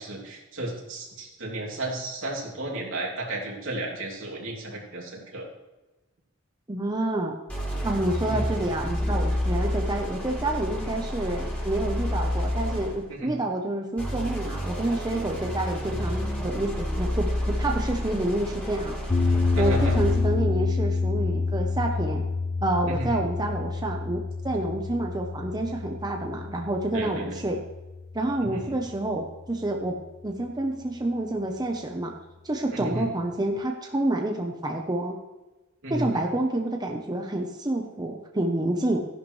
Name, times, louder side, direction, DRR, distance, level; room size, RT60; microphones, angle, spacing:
voice 1, 0.0-5.5 8.2-8.5 13.2-13.3 19.5-20.0 22.9-23.2 26.9-27.4 28.5-28.8 32.7-33.1 35.8-36.2, right 1 dB, 75° right, -2 dB, 3.0 m, -33 dB
voice 2, 6.7-7.3 7.8-18.9 19.6-22.2 22.6-27.6 28.1-30.0 30.2-32.1 32.4-35.2 35.9-39.1, right 1 dB, 20° right, 1 dB, 0.9 m, -28 dB
sound 1, 7.5-13.1 14.0-20.4, left 1 dB, 5° left, 3.5 m, -30 dB
sound 2, 19.1-29.3, left 3 dB, 30° left, 0.6 m, -28 dB
14.5 x 11.0 x 3.3 m, 1.1 s
head